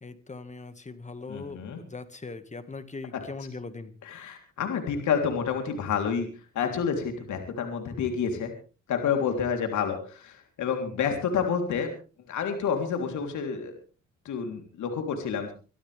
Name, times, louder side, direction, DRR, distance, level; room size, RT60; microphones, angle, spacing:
voice 1, 0.0-3.9 9.2-9.3, left 3 dB, 25° left, 11 dB, 1.9 m, -40 dB
voice 2, 1.3-1.8 4.0-6.3 6.6-8.5 8.9-11.9 12.3-13.7 14.3-15.5, left 6 dB, 75° left, 4 dB, 3.5 m, -29 dB
25.0 x 13.0 x 3.5 m, 0.37 s
cardioid pair, 90°, 30 cm